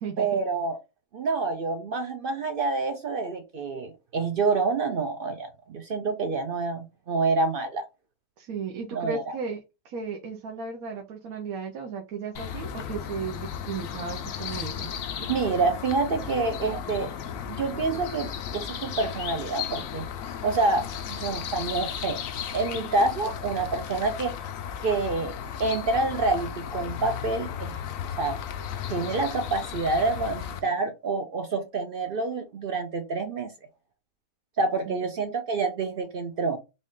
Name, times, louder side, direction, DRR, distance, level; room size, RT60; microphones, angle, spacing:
voice 1, 0.2-0.8 1.1-7.8 8.9-9.4 15.3-17.1 17.5-20.1 20.4-20.9 21.2-22.2 22.5-24.3 24.8-25.3 25.6-27.8 28.2-28.4 28.9-33.5 34.6-36.6, right 3 dB, 55° right, 0.6 m, -27 dB
voice 2, 8.4-9.6 9.8-14.9 34.9-35.1, right 5 dB, 80° right, 1.2 m, -35 dB
sound 1, 12.4-30.6, left 8 dB, 75° left, 1.0 m, -35 dB
4.0 x 2.4 x 3.6 m
omnidirectional pair, 1.5 m